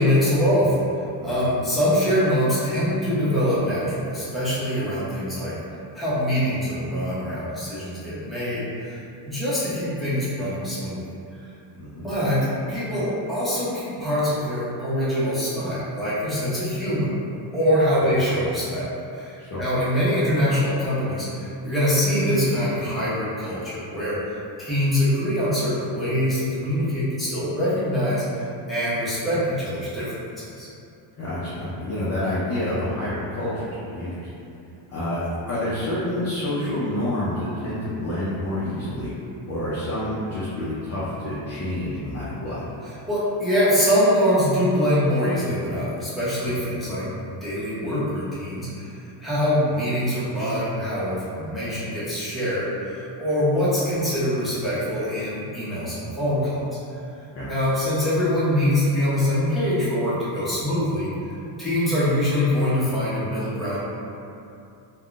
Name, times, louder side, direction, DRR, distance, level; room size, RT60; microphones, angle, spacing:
voice 1, 0.0-5.5 5.9-9.0 9.3-11.0 12.0-17.1 17.5-30.1 30.6-30.7 43.1-47.1 47.4-56.6 57.5-61.1 61.6-63.8, equal, ahead, -12 dB, 0.7 m, -24 dB
voice 2, 11.8-12.1 18.0-18.1 19.4-19.6 31.2-34.3 34.9-39.1 39.5-42.6 46.4-46.6 57.3-57.5, left 1 dB, 30° left, -10 dB, 0.4 m, -28 dB
3.5 x 2.2 x 2.4 m, 2.6 s
cardioid pair, 135°, 50 cm